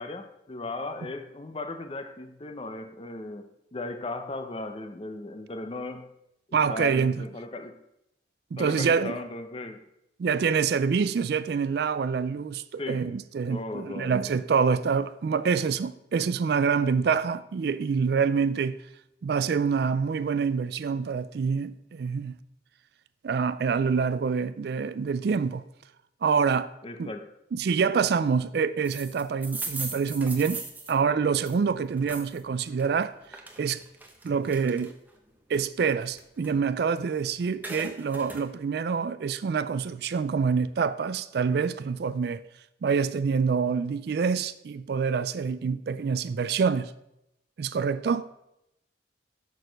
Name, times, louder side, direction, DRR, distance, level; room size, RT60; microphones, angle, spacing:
voice 1, 0.0-6.1 6.5-7.8 8.6-9.8 12.8-13.1 13.5-14.3 26.8-27.3, left 2 dB, 30° left, 0.6 m, -37 dB
voice 2, 6.5-7.2 8.5-9.2 10.2-18.8 19.2-22.4 23.2-25.6 26.2-26.7 27.0-27.1 27.5-30.6 30.9-33.1 33.6-33.8 34.2-35.0 35.5-42.4 42.8-46.9 47.6-48.3, right 5 dB, 55° right, 0.3 m, -26 dB
sound 1, 28.8-32.4 32.8-35.2 35.6-37.1 37.4-38.5, right 3 dB, 10° right, 0.7 m, -39 dB
6.5 x 6.3 x 5.1 m
head